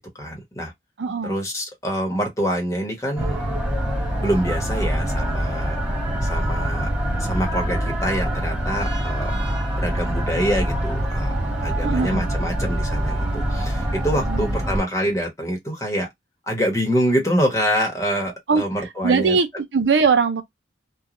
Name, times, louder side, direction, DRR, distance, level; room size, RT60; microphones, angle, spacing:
voice 1, 0.1-0.7 1.2-3.4 4.2-5.7 6.2-6.9 7.2-9.3 9.8-11.3 11.6-16.1 16.5-19.4, equal, 15° left, 1.0 m, -25 dB
voice 2, 1.0-1.4 11.8-12.2 14.2-14.6 18.5-18.6 19.0-20.4, right 5 dB, 75° right, 0.5 m, -20 dB
sound 1, 3.2-14.8, right 1 dB, 5° right, 0.9 m, -24 dB
3.1 x 2.3 x 2.4 m
head